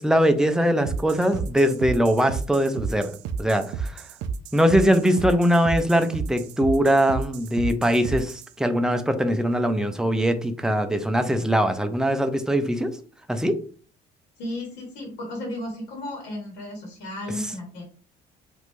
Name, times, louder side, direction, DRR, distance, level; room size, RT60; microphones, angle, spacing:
voice 1, 0.0-4.0 4.5-12.9 13.3-13.6, equal, 5° right, 7 dB, 0.4 m, -22 dB
sound 1, 0.8-8.5, right 6 dB, 85° right, 0.4 m, -32 dB
voice 2, 14.4-17.8, left 1 dB, 85° left, 0 dB, 1.2 m, -34 dB
3.2 x 2.6 x 3.1 m, 0.42 s
cardioid pair, 110°, 17 cm